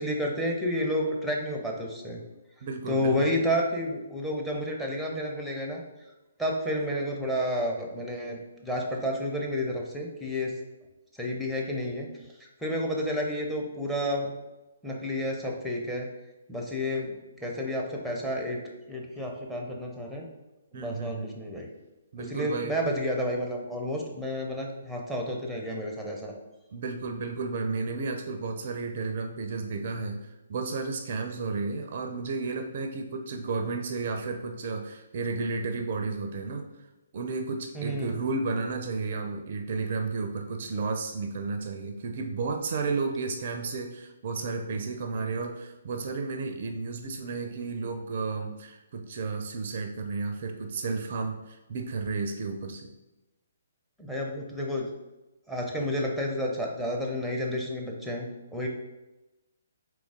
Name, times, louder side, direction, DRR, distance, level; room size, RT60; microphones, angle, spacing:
voice 1, 0.0-2.2 2.9-5.8 6.4-10.6 11.2-12.1 12.6-14.3 14.8-16.1 16.5-17.1 17.4-18.6 18.9-20.3 20.7-21.7 22.2-26.4 37.7-38.2 54.0-54.9 55.5-58.7, equal, ahead, 0 dB, 0.6 m, -30 dB
voice 2, 2.6-3.3 20.7-21.3 22.1-22.8 26.7-30.2 30.5-36.7 37.1-52.9, right 4 dB, 50° right, 6 dB, 0.4 m, -32 dB
3.9 x 3.0 x 3.6 m, 1.0 s
figure-of-eight pair, 130°, 0 cm